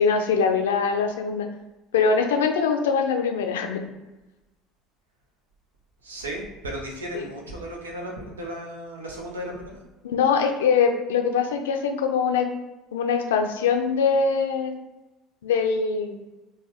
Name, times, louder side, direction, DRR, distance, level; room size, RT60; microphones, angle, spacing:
voice 1, 0.0-1.5 1.9-3.8 7.1-7.3 10.0-12.5 12.9-14.8 15.4-16.2, left 5 dB, 75° left, 4 dB, 0.4 m, -22 dB
voice 2, 6.0-9.8, right 1 dB, 85° right, 0 dB, 0.7 m, -35 dB
3.9 x 2.3 x 2.9 m, 1.1 s
figure-of-eight pair, 65°, 0 cm